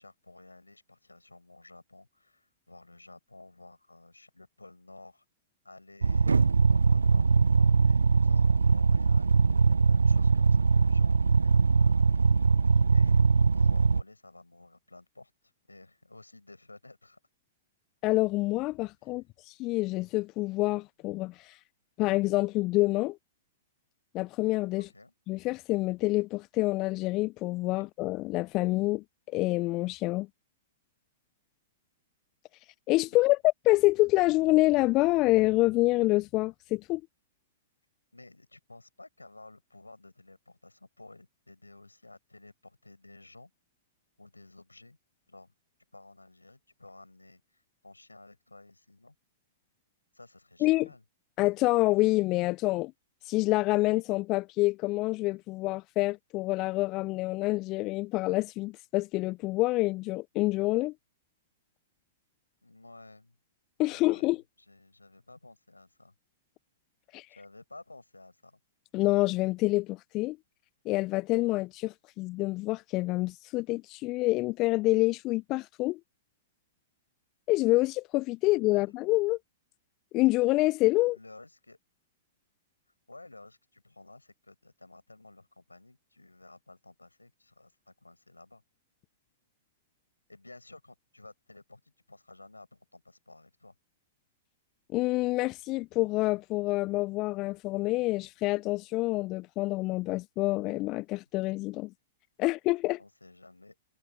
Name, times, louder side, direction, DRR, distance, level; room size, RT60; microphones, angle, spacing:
voice 1, 0.0-5.2 5.6-9.6 9.8-12.1 12.9-13.3 13.5-15.3 15.7-17.2 19.1-19.2 24.8-25.1 38.1-43.5 44.2-45.0 45.3-45.5 45.9-49.2 50.1-51.0 62.6-63.4 63.9-64.4 64.7-66.1 67.3-68.6 78.7-78.9 81.0-81.8 83.1-88.6 90.3-93.7 103.0-103.8, left 2 dB, 85° left, 5.4 m, -53 dB
sound 1, 6.0-14.0, right 4 dB, 75° right, 0.3 m, -22 dB
voice 2, 18.0-21.6 22.0-23.2 24.1-24.9 25.3-30.3 32.9-33.4 33.6-37.0 50.6-50.9 51.4-52.9 53.2-60.9 63.8-64.4 67.1-67.3 68.9-70.4 70.9-76.0 77.5-79.4 80.1-81.2 94.9-101.9 102.4-103.0, left 20 dB, 35° left, 0.4 m, -27 dB
figure-of-eight pair, 105°, 0 cm